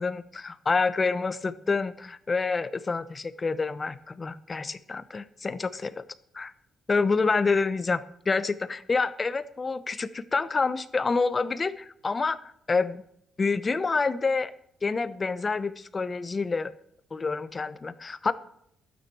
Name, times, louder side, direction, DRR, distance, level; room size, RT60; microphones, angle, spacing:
voice 1, 0.0-6.0 6.3-6.5 6.9-13.0 13.4-14.5 14.8-16.7 17.1-18.3, left 4 dB, 30° left, 13 dB, 0.8 m, -27 dB
12.0 x 9.2 x 4.7 m, 0.73 s
cardioid pair, 90°, 0 cm